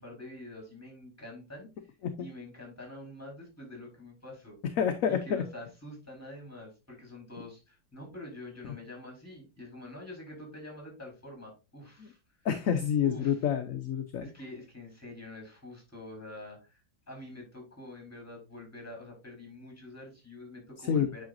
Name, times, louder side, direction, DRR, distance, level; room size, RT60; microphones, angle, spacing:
voice 1, 0.0-1.7 2.2-4.6 5.1-12.2 13.0-13.4 14.2-21.2, left 1 dB, 10° left, 1 dB, 4.2 m, -46 dB
voice 2, 4.8-5.4 12.4-14.2 20.8-21.1, left 8 dB, 60° left, 7 dB, 0.9 m, -28 dB
8.9 x 5.7 x 2.6 m, 0.27 s
omnidirectional pair, 2.0 m